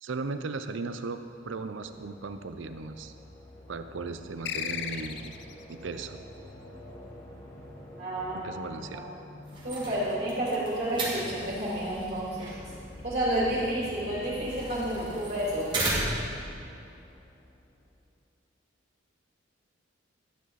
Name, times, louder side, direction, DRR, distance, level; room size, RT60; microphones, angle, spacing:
voice 1, 0.0-1.2 1.4-3.1 3.7-5.4 5.7-6.2 8.3-9.1, right 4 dB, 70° right, 10 dB, 0.5 m, -37 dB
sound 1, 1.1-18.0, left 1 dB, 15° left, 1.5 m, -48 dB
sound 2, 4.4-5.6, left 8 dB, 55° left, 0.4 m, -35 dB
voice 2, 8.0-8.4 8.9-9.1 9.6-12.6 13.0-15.7, right 1 dB, 45° right, -7 dB, 2.9 m, -30 dB
sound 3, 9.4-16.4, right 2 dB, 25° right, 1.8 m, -36 dB
12.0 x 9.5 x 4.1 m, 2.4 s
head